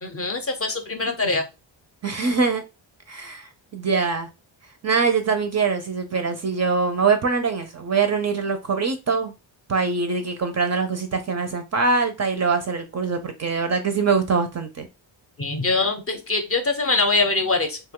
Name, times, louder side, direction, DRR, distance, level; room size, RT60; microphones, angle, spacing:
voice 1, 0.0-1.5 15.4-17.8, left 3 dB, 30° left, 0.6 m, -23 dB
voice 2, 2.0-2.6 3.1-4.3 4.8-9.3 9.7-14.9, right 4 dB, 35° right, 0.4 m, -23 dB
2.9 x 2.2 x 3.5 m
wide cardioid pair, 135°, 47 cm